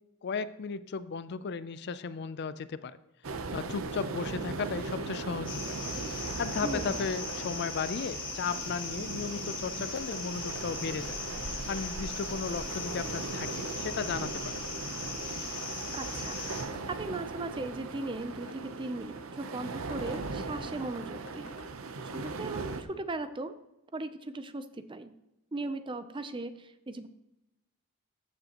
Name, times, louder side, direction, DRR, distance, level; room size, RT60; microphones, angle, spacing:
voice 1, 0.2-3.0 3.5-5.8 6.1-11.2 11.5-14.7, left 5 dB, 55° left, 15 dB, 0.4 m, -35 dB
sound 1, 3.2-22.8, right 3 dB, 80° right, 0.7 m, -39 dB
sound 2, 5.4-16.6, left 3 dB, 25° left, 2.3 m, -39 dB
voice 2, 6.6-7.0 15.9-21.5 22.0-23.5 23.9-25.1 25.5-27.1, right 2 dB, 25° right, 11 dB, 0.5 m, -38 dB
sound 3, 7.3-7.4 7.8-7.9 8.5-8.7 10.1-10.3 10.6-10.7 11.1-11.2 12.6-12.7 13.1-13.8 14.6-14.8 15.0-15.2 16.7-16.9 18.5-18.6 19.9-20.3 21.3-21.7, left 2 dB, 75° left, 1.3 m, -50 dB
14.5 x 6.6 x 2.9 m, 0.92 s
head